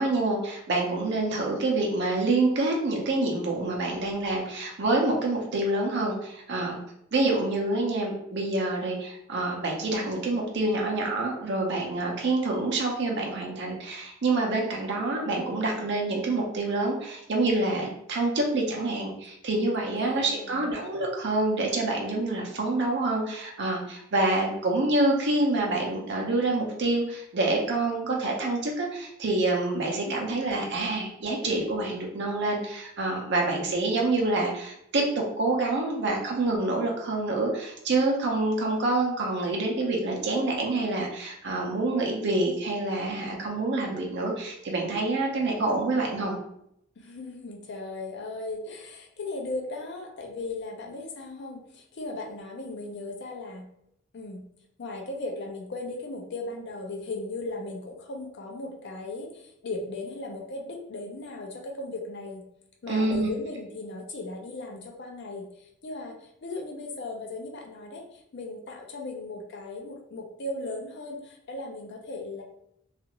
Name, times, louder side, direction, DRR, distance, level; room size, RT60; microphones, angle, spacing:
voice 1, 0.0-6.8 7.1-46.4 62.9-63.3, right 2 dB, 60° right, 0 dB, 0.6 m, -27 dB
voice 2, 19.9-20.8 30.0-30.2 47.0-53.7 54.1-54.4 54.8-62.4 62.8-72.4, left 2 dB, 60° left, 2 dB, 0.5 m, -37 dB
2.4 x 2.4 x 2.9 m, 0.75 s
head